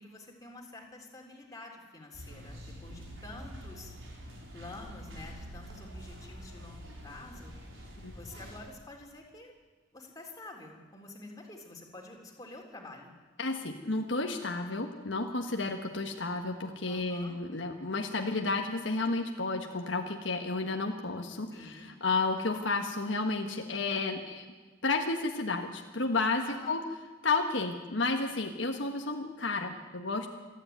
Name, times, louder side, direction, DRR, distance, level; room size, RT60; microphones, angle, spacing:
voice 1, 0.0-3.9 4.5-7.5 8.1-9.5 9.9-13.1 16.9-17.4 21.5-21.9 26.4-26.8, left 2 dB, 20° left, 0 dB, 3.6 m, -48 dB
sound 1, 2.1-8.6, equal, 80° right, 5.0 m, -46 dB
voice 2, 13.4-24.5 24.8-26.8 27.2-30.3, left 3 dB, 70° left, 3 dB, 1.5 m, -32 dB
27.0 x 10.5 x 9.4 m, 1.4 s
head